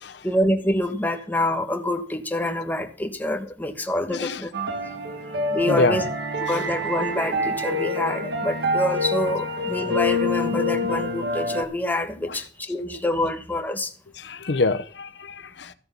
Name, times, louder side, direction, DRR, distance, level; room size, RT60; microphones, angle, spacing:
voice 1, 0.2-4.5 5.5-6.0 6.5-13.9, left 1 dB, 10° left, 1.3 m, -26 dB
voice 2, 4.1-4.5 5.7-6.0 6.5-6.7 12.2-12.4 13.2-13.3 14.1-15.7, left 3 dB, 75° left, 0.8 m, -27 dB
sound 1, 4.5-11.6, left 1 dB, 65° right, 1.7 m, -26 dB
14.5 x 6.7 x 6.9 m
head